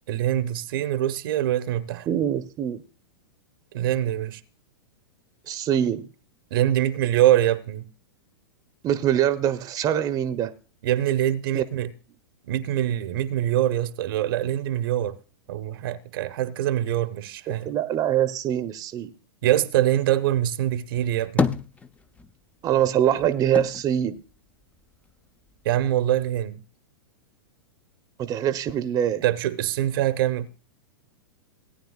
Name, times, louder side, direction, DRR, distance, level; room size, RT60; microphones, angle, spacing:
voice 1, 0.1-2.1 3.7-4.4 6.5-7.9 10.8-11.9 12.4-15.2 15.5-17.7 19.4-21.6 25.6-26.6 29.2-30.5, right 12 dB, 60° right, 0.8 m, -24 dB
voice 2, 2.1-2.8 5.5-6.1 8.8-10.5 11.5-11.6 17.5-19.1 22.6-24.2 28.2-29.2, right 10 dB, 30° right, 0.7 m, -24 dB
sound 1, 20.9-22.4 22.7-25.1 25.5-26.4, left 5 dB, 10° left, 0.5 m, -30 dB
18.0 x 9.1 x 2.3 m
hypercardioid pair, 110°, 13 cm